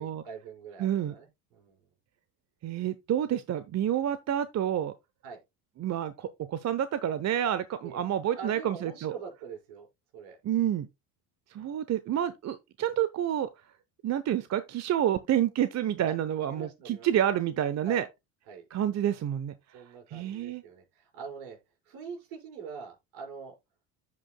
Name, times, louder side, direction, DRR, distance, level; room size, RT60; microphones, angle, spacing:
voice 1, 0.0-1.8 5.2-5.4 7.8-8.0 8.4-9.9 10.1-10.4 16.4-17.1 17.8-18.0 18.5-18.6 19.7-21.6 21.8-23.5, right 5 dB, 70° right, 5.0 m, -44 dB
voice 2, 0.8-1.2 2.6-4.9 5.8-9.1 10.4-10.9 11.5-13.5 14.0-18.1 18.7-19.5 20.1-20.6, right 10 dB, 40° right, 0.8 m, -29 dB
14.5 x 5.3 x 2.2 m
hypercardioid pair, 75°, 42 cm